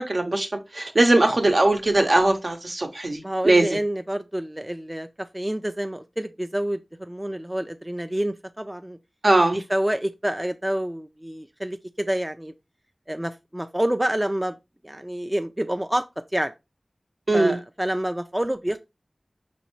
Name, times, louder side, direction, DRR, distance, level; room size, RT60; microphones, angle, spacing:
voice 1, 0.0-3.7 9.2-9.6 17.3-17.6, right 2 dB, 60° right, 0.9 m, -20 dB
voice 2, 3.2-9.0 9.5-12.5 13.1-14.5 14.8-16.1 16.3-16.5 17.3-18.8, right 1 dB, 15° right, 0.4 m, -28 dB
5.1 x 3.2 x 3.0 m
wide cardioid pair, 50°, 0 cm